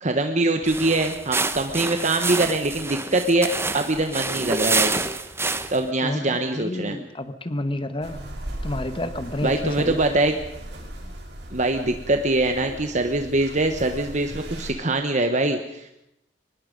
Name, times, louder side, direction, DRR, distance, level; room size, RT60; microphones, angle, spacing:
voice 1, 0.0-4.9 5.7-7.0 9.4-10.3 11.5-15.9, right 2 dB, 40° right, 6 dB, 1.3 m, -23 dB
sound 1, 0.6-5.9, right 3 dB, 15° right, 0.9 m, -27 dB
voice 2, 6.0-8.2 8.6-10.4, left 1 dB, 30° left, 11 dB, 1.3 m, -30 dB
sound 2, 8.0-14.7, right 1 dB, 70° right, 6.9 m, -37 dB
24.0 x 20.5 x 5.3 m, 0.83 s
head